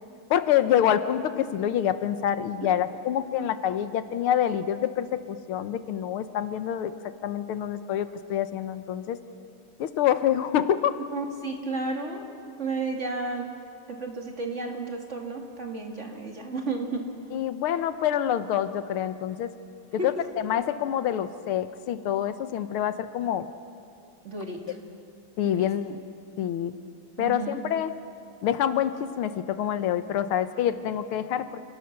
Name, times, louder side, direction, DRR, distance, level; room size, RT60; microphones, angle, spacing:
voice 1, 0.3-6.9 7.2-9.2 9.8-11.0 17.3-19.5 20.0-23.5 25.4-26.0 26.4-26.7 27.2-27.9 28.4-31.6, left 10 dB, 90° left, 11 dB, 1.8 m, -26 dB
voice 2, 11.1-13.5 13.9-17.1 20.0-20.2 24.2-24.8 25.6-25.7 27.2-27.6, right 3 dB, 35° right, 2 dB, 2.4 m, -33 dB
29.5 x 18.0 x 6.6 m, 2.4 s
omnidirectional pair, 2.3 m